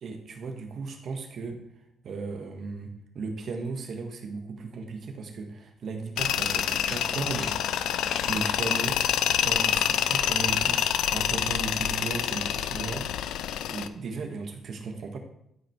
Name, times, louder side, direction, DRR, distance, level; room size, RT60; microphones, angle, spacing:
voice 1, 0.0-1.6 2.0-7.5 8.3-9.0 9.4-13.1 13.4-15.2, right 4 dB, 60° right, 4 dB, 1.5 m, -36 dB
sound 1, 5.8-5.9 6.6-7.5 7.9-8.8, left 2 dB, 25° left, 3.8 m, -42 dB
Tools, 6.2-13.9, left 10 dB, 85° left, 0.4 m, -27 dB
12.5 x 5.1 x 4.6 m, 0.78 s
cardioid pair, 90°, 0 cm